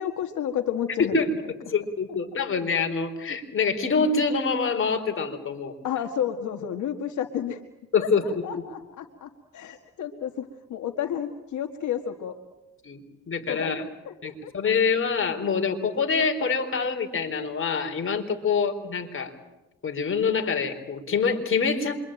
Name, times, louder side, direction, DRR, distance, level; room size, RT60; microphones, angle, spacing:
voice 1, 0.0-1.2 5.8-7.6 8.0-12.4 13.5-14.7, left 9 dB, 75° left, 5 dB, 1.9 m, -31 dB
voice 2, 1.0-5.7 7.9-8.6 12.8-13.0 13.3-13.8 14.2-19.3 19.8-22.0, left 5 dB, 45° left, 4 dB, 4.3 m, -25 dB
27.0 x 24.0 x 9.0 m, 1.0 s
cardioid pair, 90°, 30 cm